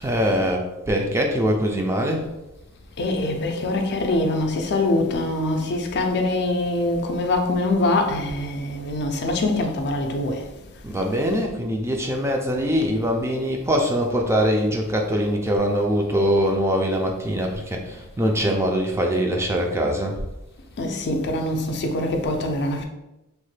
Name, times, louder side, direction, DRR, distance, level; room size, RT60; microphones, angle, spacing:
voice 1, 0.0-2.2 10.8-20.2, equal, 10° right, 0.3 m, -23 dB
voice 2, 3.0-10.4 20.8-22.8, left 2 dB, 50° left, 0.4 m, -24 dB
3.1 x 2.1 x 3.1 m
head